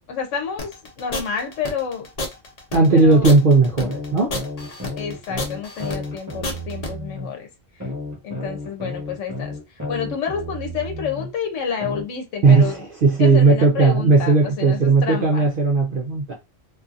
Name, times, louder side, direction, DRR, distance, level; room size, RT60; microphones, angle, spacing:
voice 1, 0.1-0.7 1.0-2.1 2.9-3.3 5.0-7.5 7.7-7.9 8.2-12.8 13.2-15.5, left 7 dB, 80° left, 1.0 m, -29 dB
sound 1, 0.6-6.9, left 2 dB, 40° left, 0.6 m, -30 dB
voice 2, 2.7-4.3 12.4-16.3, right 3 dB, 55° right, 0.7 m, -16 dB
sound 2, 3.0-3.3 3.8-7.3 7.8-11.3 11.8-12.0, left 1 dB, 15° right, 1.1 m, -32 dB
2.6 x 2.5 x 2.4 m
omnidirectional pair, 1.2 m